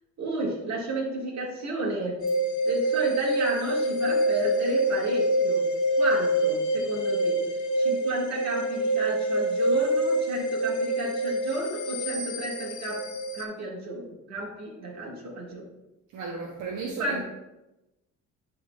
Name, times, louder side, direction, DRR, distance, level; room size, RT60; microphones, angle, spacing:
voice 1, 0.2-2.3 2.6-5.6 6.0-7.4 7.8-13.1 13.3-15.7 17.0-17.2, right 2 dB, 65° right, -2 dB, 1.9 m, -32 dB
sound 1, 2.2-13.4, right 1 dB, 80° left, 0.9 m, -26 dB
voice 2, 16.1-17.2, right 4 dB, 85° right, -1 dB, 0.8 m, -34 dB
9.9 x 3.9 x 2.4 m, 0.97 s
cardioid pair, 90°, 30 cm